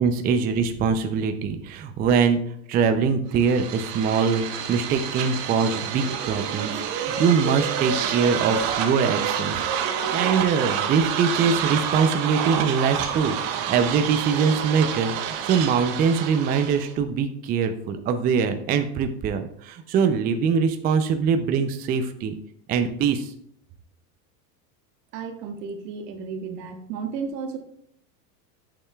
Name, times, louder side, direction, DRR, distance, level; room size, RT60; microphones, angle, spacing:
voice 1, 0.0-2.4 2.7-9.6 10.1-22.3 22.7-23.3, right 6 dB, 20° right, 7 dB, 0.3 m, -23 dB
sound 1, 3.4-16.9, right 8 dB, 55° right, 1.1 m, -28 dB
voice 2, 25.1-27.6, right 5 dB, 70° right, 5 dB, 1.4 m, -33 dB
8.6 x 6.7 x 2.3 m, 0.68 s
supercardioid pair, 110°, 50 cm